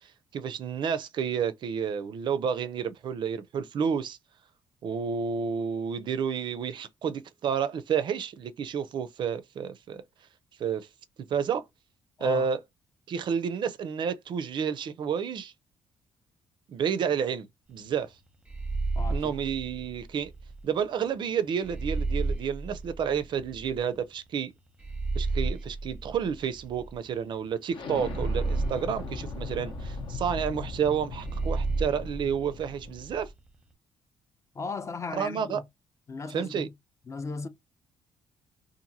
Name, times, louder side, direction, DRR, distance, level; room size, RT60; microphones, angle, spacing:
voice 1, 0.3-4.2 4.8-10.0 10.6-10.9 11.3-11.6 12.2-12.6 13.1-15.5 16.7-18.1 19.1-20.3 20.6-24.5 25.2-33.3 35.1-35.6 36.3-36.7, right 7 dB, 55° right, 0.4 m, -30 dB
sound 1, 18.5-20.6 21.6-23.8 24.8-27.2 28.0-30.1 31.1-33.3, right 3 dB, 10° right, 0.7 m, -32 dB
voice 2, 18.9-19.3 34.5-35.6 36.1-36.7 37.1-37.5, left 4 dB, 30° left, 0.5 m, -36 dB
Explosion, 27.7-33.2, left 3 dB, 65° left, 0.7 m, -39 dB
2.8 x 2.5 x 2.6 m
cardioid pair, 100°, 9 cm